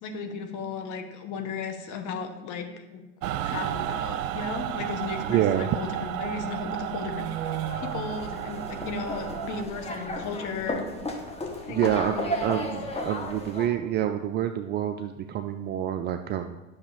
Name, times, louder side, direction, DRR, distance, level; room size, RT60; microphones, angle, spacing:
voice 1, 0.0-3.0 3.4-10.9 11.7-12.7, left 5 dB, 45° left, 5 dB, 1.6 m, -35 dB
Mechanical fan, 3.2-9.6, right 11 dB, 65° right, 0.8 m, -32 dB
voice 2, 5.3-5.7 11.7-16.6, right 11 dB, 25° right, 8 dB, 0.4 m, -27 dB
sound 1, 7.5-13.7, equal, 15° left, 1.5 m, -34 dB
10.0 x 6.3 x 5.1 m, 1.1 s
hypercardioid pair, 90°, 42 cm